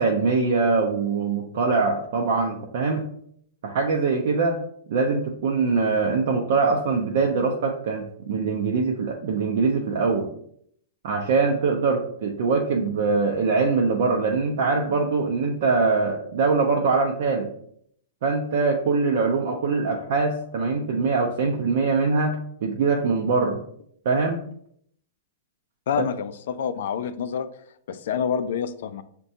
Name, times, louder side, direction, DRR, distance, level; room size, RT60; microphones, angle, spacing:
voice 1, 0.0-3.0 3.6-4.6 4.9-10.3 11.0-17.5 18.2-23.6 24.0-24.5, right 4 dB, 55° right, 0 dB, 0.5 m, -23 dB
voice 2, 25.9-27.5 27.9-29.0, left 7 dB, 60° left, 12 dB, 0.3 m, -27 dB
6.0 x 2.2 x 2.7 m, 0.66 s
hypercardioid pair, 165°, 0 cm